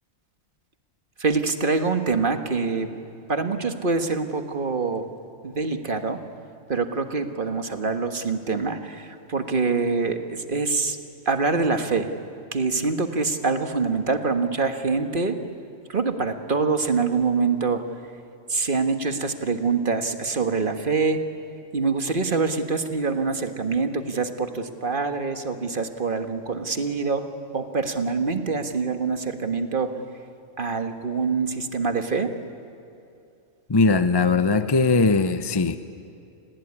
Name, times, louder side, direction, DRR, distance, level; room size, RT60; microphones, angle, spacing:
voice 1, 1.2-2.9 3.3-5.1 5.4-6.2 6.7-11.0 11.2-12.1 12.5-15.4 15.9-17.8 18.5-21.2 21.7-27.3 27.5-30.0 30.6-32.3, right 4 dB, 40° right, 7 dB, 1.6 m, -25 dB
voice 2, 33.7-35.8, left 3 dB, 25° left, 10 dB, 0.6 m, -20 dB
28.0 x 20.0 x 9.8 m, 2.7 s
omnidirectional pair, 1.4 m